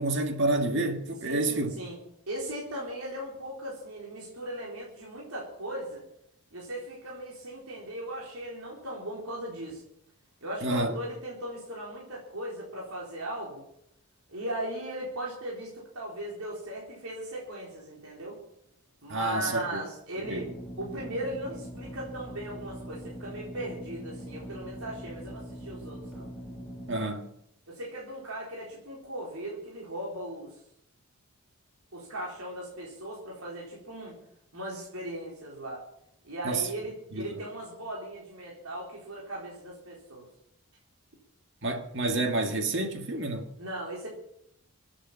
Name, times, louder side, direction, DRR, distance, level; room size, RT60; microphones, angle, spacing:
voice 1, 0.0-1.7 10.6-10.9 19.1-19.8 20.3-20.4 26.9-27.2 36.4-36.6 37.2-37.3 41.6-43.5, right 2 dB, 55° right, 1.9 m, -28 dB
voice 2, 1.2-2.0 2.3-6.0 6.5-9.8 10.4-13.6 14.3-18.4 19.0-26.3 27.7-30.6 31.9-34.1 34.5-35.8 36.2-40.3 43.6-44.1, right 1 dB, 75° right, 4.3 m, -38 dB
sound 1, 20.2-27.0, equal, 5° right, 7.1 m, -42 dB
25.0 x 9.1 x 5.7 m
head